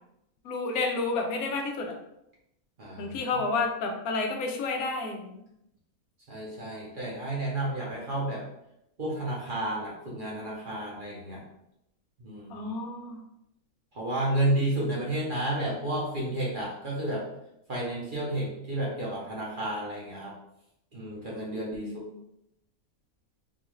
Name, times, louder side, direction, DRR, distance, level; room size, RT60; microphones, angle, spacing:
voice 1, 0.4-1.9 3.0-5.3 12.5-13.2 21.8-22.1, left 3 dB, 80° left, 3 dB, 1.1 m, -30 dB
voice 2, 2.8-3.4 6.3-8.4 9.0-11.4 12.2-12.7 13.9-17.2 17.7-20.3 20.9-21.9, right 1 dB, 45° right, -5 dB, 0.8 m, -31 dB
3.9 x 2.3 x 3.0 m, 0.81 s
omnidirectional pair, 1.5 m